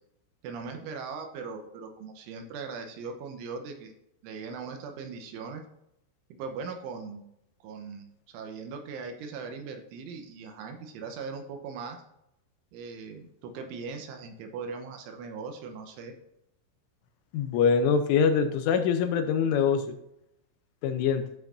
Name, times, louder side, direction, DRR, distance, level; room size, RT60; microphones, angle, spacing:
voice 1, 0.4-3.9 4.2-5.6 6.3-7.2 7.6-12.0 12.7-16.1, right 5 dB, 80° right, 4 dB, 3.2 m, -39 dB
voice 2, 17.3-20.0 20.8-21.2, left 6 dB, 80° left, 7 dB, 3.0 m, -24 dB
13.0 x 5.7 x 2.6 m, 0.80 s
omnidirectional pair, 6.0 m